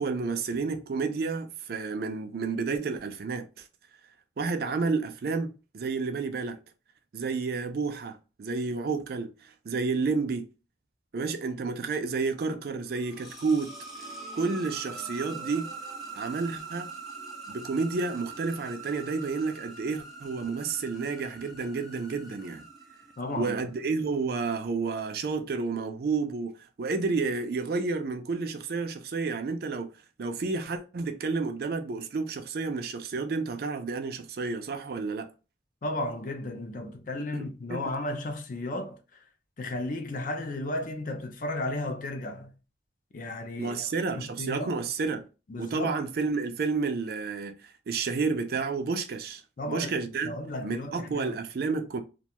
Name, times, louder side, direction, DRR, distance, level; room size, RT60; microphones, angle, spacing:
voice 1, 0.0-3.6 4.4-6.6 7.1-10.5 11.1-13.7 14.3-15.7 16.1-16.9 17.5-22.7 23.4-29.9 30.2-35.3 37.3-37.8 43.6-45.2 45.6-49.4 49.7-50.3 50.6-52.0, right 4 dB, 55° right, 0.4 m, -30 dB
sound 1, 12.8-23.6, right 4 dB, ahead, 0.7 m, -43 dB
voice 2, 23.2-23.5 35.8-39.0 39.6-42.5 43.1-43.8 44.2-44.7 45.5-46.0 49.6-49.9 50.2-51.4, left 1 dB, 45° left, 0.4 m, -34 dB
2.4 x 2.2 x 2.8 m
head